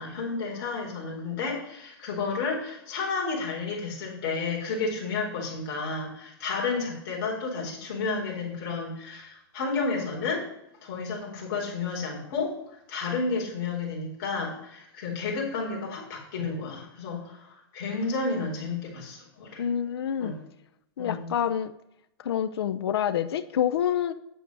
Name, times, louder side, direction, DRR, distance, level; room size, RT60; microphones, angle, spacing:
voice 1, 0.0-10.4 10.8-12.6 12.9-19.6 20.2-20.4 21.0-21.2, left 4 dB, 45° left, -2 dB, 4.2 m, -31 dB
voice 2, 19.6-20.4 21.0-21.7 22.2-24.1, left 9 dB, 75° left, 12 dB, 0.7 m, -27 dB
9.2 x 6.7 x 6.2 m, 0.81 s
hypercardioid pair, 160°, 13 cm